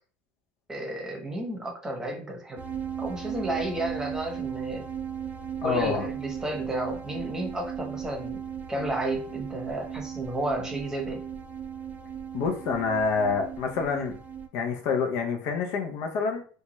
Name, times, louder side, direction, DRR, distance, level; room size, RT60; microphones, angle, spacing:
voice 1, 0.7-2.6 3.0-4.8 5.6-8.4 8.7-11.2, right 1 dB, 10° right, 2 dB, 0.9 m, -32 dB
sound 1, 2.6-14.5, right 8 dB, 30° right, 0.4 m, -37 dB
voice 2, 5.6-6.1 12.3-14.1 14.5-16.4, left 5 dB, 65° left, 4 dB, 0.5 m, -27 dB
2.7 x 2.2 x 2.9 m, 0.42 s
supercardioid pair, 95°, 5 cm